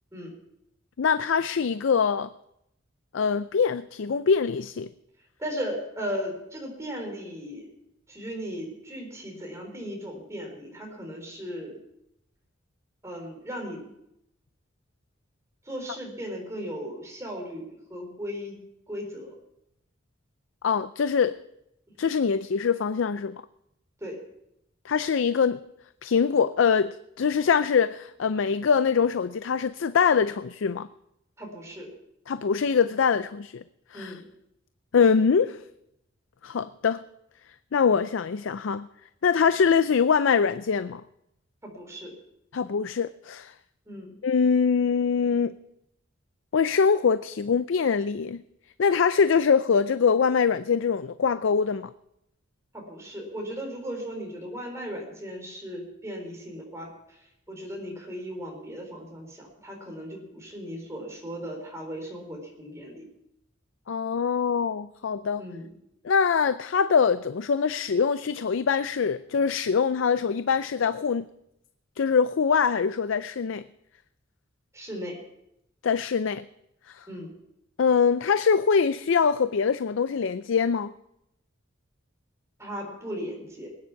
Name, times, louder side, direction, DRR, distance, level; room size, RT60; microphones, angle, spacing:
voice 1, 1.0-2.3 3.1-4.9 20.6-21.4 22.0-23.4 24.8-25.6 26.0-30.9 32.3-33.6 33.9-34.1 34.9-35.6 36.4-37.0 37.7-38.9 39.2-41.0 42.5-43.5 44.2-45.5 46.5-48.4 48.8-51.9 63.9-65.4 66.0-71.2 72.0-73.6 75.8-76.4 76.9-77.0 77.8-80.9, left 6 dB, 70° left, 0.4 m, -23 dB
voice 2, 5.4-7.7 8.1-11.8 13.0-13.9 15.6-18.6 18.9-19.3 24.0-24.2 31.4-31.9 33.9-34.2 41.6-42.1 43.9-44.1 52.7-63.1 65.4-65.7 74.7-75.2 77.1-77.3 82.6-83.7, equal, 15° right, 4.0 m, -37 dB
20.5 x 9.7 x 5.8 m
head